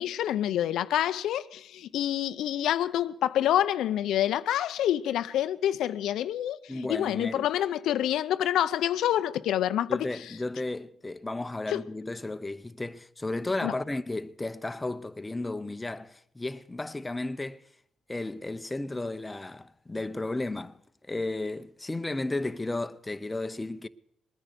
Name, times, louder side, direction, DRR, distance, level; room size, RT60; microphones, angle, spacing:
voice 1, 0.0-10.1 11.7-11.8 13.6-13.7, left 11 dB, 80° left, 0.6 m, -27 dB
voice 2, 6.7-7.5 9.9-17.6 18.1-20.8 21.1-23.9, left 2 dB, 15° left, 0.8 m, -33 dB
20.5 x 10.0 x 6.7 m
cardioid pair, 90°, 0 cm